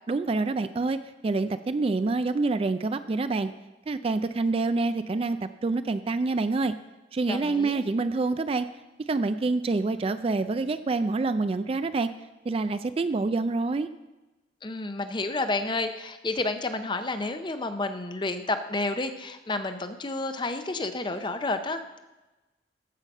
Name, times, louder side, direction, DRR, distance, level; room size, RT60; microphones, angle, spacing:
voice 1, 0.1-3.5 3.9-6.7 7.1-8.7 9.1-12.1 12.5-13.9, right 3 dB, 30° right, 11 dB, 0.3 m, -27 dB
voice 2, 7.3-7.8 14.6-22.0, left 2 dB, 25° left, 9 dB, 0.6 m, -30 dB
14.5 x 5.6 x 5.4 m, 1.1 s
head